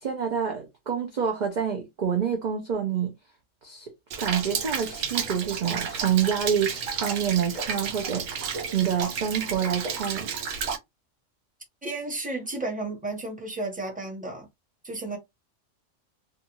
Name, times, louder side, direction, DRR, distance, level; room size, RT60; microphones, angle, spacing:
voice 1, 0.0-3.1 3.6-3.9 4.2-10.3, right 8 dB, 50° right, 0.6 m, -27 dB
Rain, 4.1-10.8, right 6 dB, 85° right, 1.0 m, -32 dB
voice 2, 11.8-14.5 14.8-15.2, right 2 dB, 5° right, 0.8 m, -33 dB
2.5 x 2.4 x 2.9 m
omnidirectional pair, 1.3 m